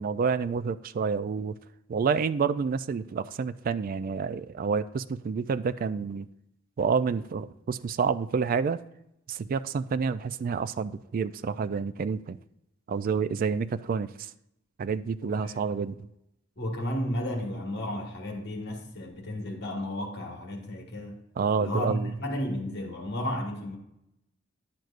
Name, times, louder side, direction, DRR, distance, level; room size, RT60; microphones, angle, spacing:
voice 1, 0.0-1.6 1.9-6.3 6.8-8.8 9.3-12.4 12.9-14.3 14.8-16.1 21.4-22.1, right 5 dB, 45° right, 0.3 m, -29 dB
voice 2, 15.2-15.6 16.6-21.2 21.6-23.8, left 1 dB, 55° left, 1.5 m, -33 dB
10.5 x 7.8 x 2.5 m
head